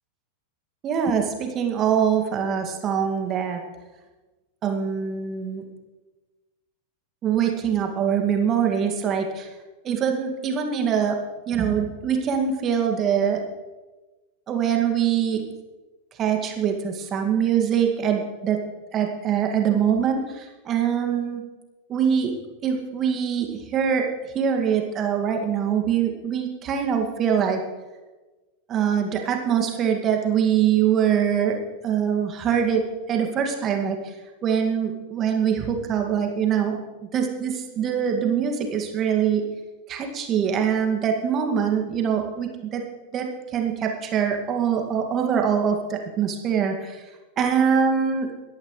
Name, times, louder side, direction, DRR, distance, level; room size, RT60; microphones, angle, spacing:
voice 1, 0.8-3.6 4.6-5.6 7.2-9.5 9.8-11.2 11.5-13.4 14.5-15.5 16.2-18.6 18.9-21.4 21.9-22.3 22.6-24.1 24.3-27.6 28.7-34.1 34.4-36.8 37.1-39.4 39.9-42.8 43.1-43.3 43.5-47.0 47.4-48.3, right 8 dB, 30° right, 3 dB, 2.1 m, -23 dB
23.0 x 11.0 x 3.2 m, 1.2 s
figure-of-eight pair, 90°, 0 cm